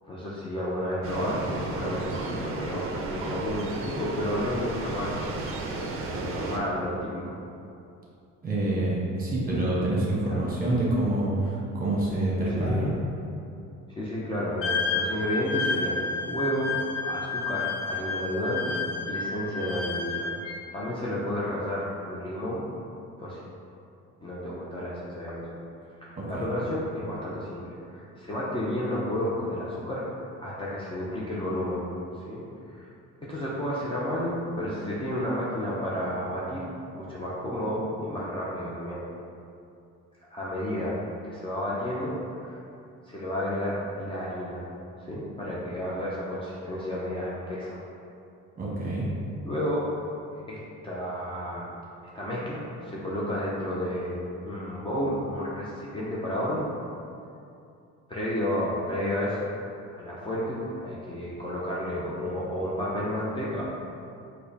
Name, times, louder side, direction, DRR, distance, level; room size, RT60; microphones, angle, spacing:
voice 1, 0.1-5.3 5.6-7.4 10.2-10.4 12.6-12.9 13.9-22.7 23.2-23.4 24.2-25.6 26.0-30.0 30.4-31.8 32.3-32.9 33.3-36.7 36.9-39.0 40.3-41.0 41.2-42.6 43.0-44.6 45.0-47.8 49.4-49.9 50.3-50.6 50.8-51.7 52.1-56.7 58.1-59.5 59.9-63.8, equal, 15° left, -7 dB, 0.5 m, -31 dB
sound 1, 1.0-6.6, right 3 dB, 45° right, 0.5 m, -33 dB
voice 2, 8.4-12.9 26.2-26.4 48.6-49.1, right 1 dB, 30° right, -6 dB, 1.0 m, -27 dB
Wind instrument woodwind instrument, 14.6-20.6, left 4 dB, 90° left, 0.6 m, -30 dB
4.7 x 2.2 x 2.7 m, 2.6 s
cardioid pair, 110°, 31 cm